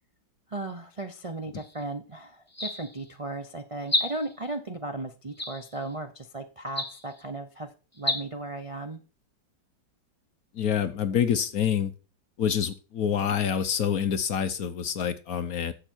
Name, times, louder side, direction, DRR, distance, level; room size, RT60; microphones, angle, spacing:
voice 1, 0.5-7.7 8.0-9.0, right 2 dB, 55° right, 5 dB, 0.3 m, -36 dB
sound 1, 1.5-1.8 2.5-3.1 3.8-4.4 5.3-5.9 6.7-7.2 7.9-8.2, left 1 dB, 10° left, 1.3 m, -31 dB
voice 2, 10.5-11.9 12.4-15.7, left 8 dB, 60° left, 11 dB, 1.0 m, -27 dB
11.5 x 7.2 x 4.5 m, 0.36 s
omnidirectional pair, 2.1 m